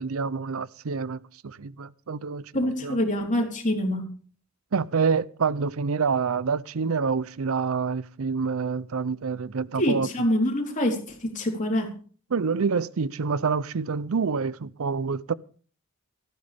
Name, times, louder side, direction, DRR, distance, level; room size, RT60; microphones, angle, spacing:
voice 1, 0.0-2.5 2.8-3.0 4.7-10.1 12.3-15.3, right 5 dB, 85° right, 0.6 m, -27 dB
voice 2, 2.5-4.1 9.8-11.9, equal, 40° left, 3.9 m, -25 dB
17.5 x 14.5 x 3.5 m
head